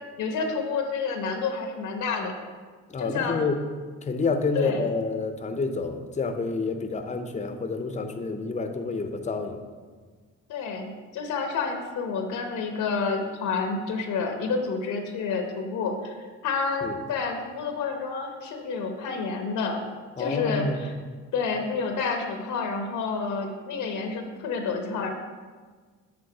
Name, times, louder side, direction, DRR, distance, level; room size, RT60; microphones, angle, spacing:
voice 1, 0.2-2.4 3.0-3.4 4.5-4.9 10.5-19.8 20.2-21.0 21.3-25.1, left 4 dB, 85° left, 4 dB, 0.9 m, -29 dB
voice 2, 2.9-3.6 4.0-9.6 16.8-17.0 20.2-20.9, left 3 dB, 25° left, 6 dB, 0.6 m, -28 dB
7.8 x 3.7 x 4.9 m, 1.5 s
cardioid pair, 90°, 30 cm